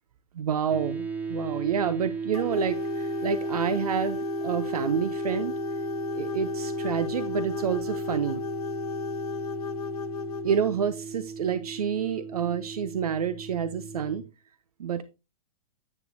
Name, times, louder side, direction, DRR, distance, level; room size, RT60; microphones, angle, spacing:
voice 1, 0.3-5.5 6.1-8.4 10.4-14.2 14.8-15.0, right 7 dB, 90° right, 0.6 m, -28 dB
sound 1, 0.7-14.3, right 5 dB, 10° right, 0.6 m, -36 dB
sound 2, 2.3-10.7, left 6 dB, 90° left, 1.3 m, -34 dB
9.8 x 6.5 x 2.6 m
hypercardioid pair, 140°, 19 cm